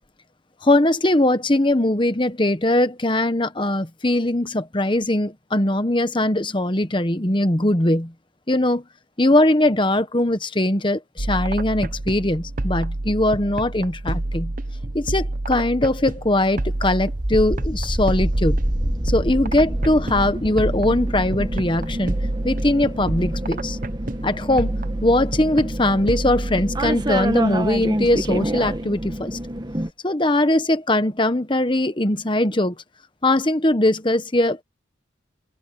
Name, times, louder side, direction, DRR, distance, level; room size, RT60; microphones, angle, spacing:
voice 1, 0.6-8.1 8.5-8.8 9.2-14.5 14.9-18.6 19.0-22.2 22.4-23.8 24.2-29.4 30.0-32.8 33.2-34.6, left 1 dB, 25° left, 1.1 m, -21 dB
sound 1, 11.2-28.8, right 2 dB, 45° right, 0.9 m, -29 dB
sound 2, 17.1-29.9, right 1 dB, 20° right, 1.2 m, -27 dB
head